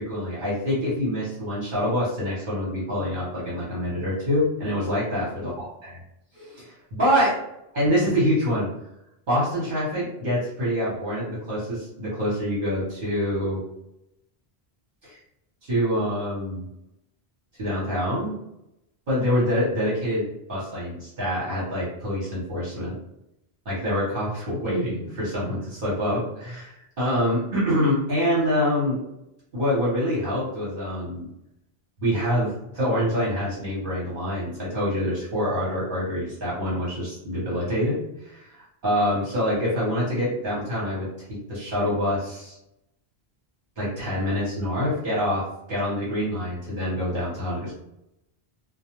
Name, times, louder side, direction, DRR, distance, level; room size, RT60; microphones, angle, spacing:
voice 1, 0.0-5.7 6.3-7.3 7.7-8.7 9.3-13.6 15.0-15.2 15.7-16.6 17.6-18.4 19.1-22.9 23.6-29.0 29.5-31.3 32.0-38.0 38.2-38.5 38.8-41.1 41.5-42.6 43.8-45.4 45.7-47.7, equal, 55° right, -8 dB, 1.1 m, -26 dB
2.2 x 2.2 x 2.8 m, 0.85 s
omnidirectional pair, 1.1 m